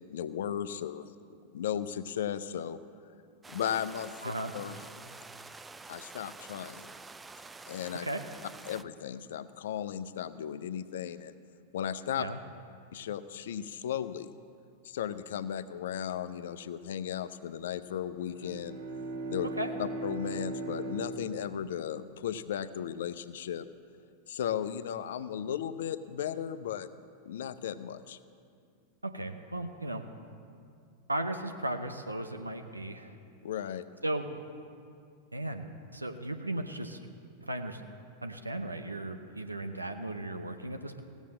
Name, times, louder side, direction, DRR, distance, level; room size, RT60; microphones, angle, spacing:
voice 1, 0.1-1.1 1.5-2.8 3.5-4.1 4.5-4.8 5.9-6.9 7.7-8.1 8.7-11.4 11.7-12.3 12.9-14.3 14.8-18.8 19.3-19.5 19.8-23.7 24.3-26.9 27.3-28.2 33.4-33.9, left 9 dB, 60° left, 12 dB, 0.5 m, -35 dB
sound 1, 3.4-8.8, right 3 dB, 10° right, 0.4 m, -48 dB
voice 2, 4.2-4.5 8.0-8.2 12.2-12.4 19.6-19.7 29.0-30.1 31.1-33.1 34.0-34.3 35.3-37.0 37.4-37.8 38.2-41.0, right 1 dB, 85° right, 6 dB, 0.7 m, -36 dB
Bowed string instrument, 18.1-22.7, right 2 dB, 60° right, 2.0 m, -39 dB
16.5 x 7.2 x 7.6 m, 2.4 s
figure-of-eight pair, 90°, 0 cm